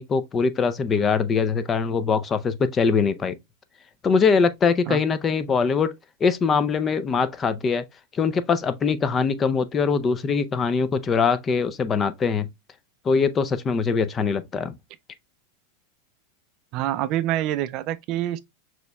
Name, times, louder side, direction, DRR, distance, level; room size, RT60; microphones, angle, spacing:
voice 1, 0.0-3.4 4.0-5.9 6.2-7.9 8.1-12.5 13.0-14.7, left 5 dB, 25° left, 0.4 m, -22 dB
voice 2, 16.7-18.4, right 13 dB, 45° right, 0.3 m, -26 dB
6.3 x 2.9 x 2.2 m
supercardioid pair, 130°, 0 cm